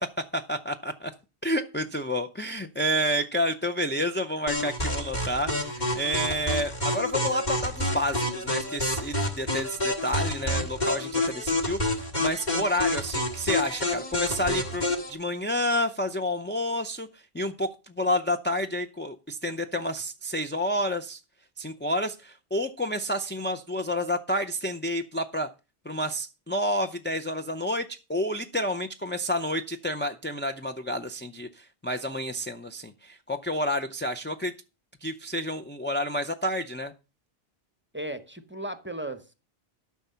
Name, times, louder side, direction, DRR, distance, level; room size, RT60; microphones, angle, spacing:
voice 1, 0.2-1.1 1.4-14.8 15.1-21.2 21.6-25.5 25.8-34.5 35.0-36.9, equal, 15° left, 0.5 m, -29 dB
sound 1, 4.5-15.1, left 1 dB, 45° left, 2.1 m, -28 dB
voice 2, 37.9-39.3, right 1 dB, 10° right, 0.9 m, -36 dB
13.0 x 6.0 x 5.6 m
omnidirectional pair, 1.1 m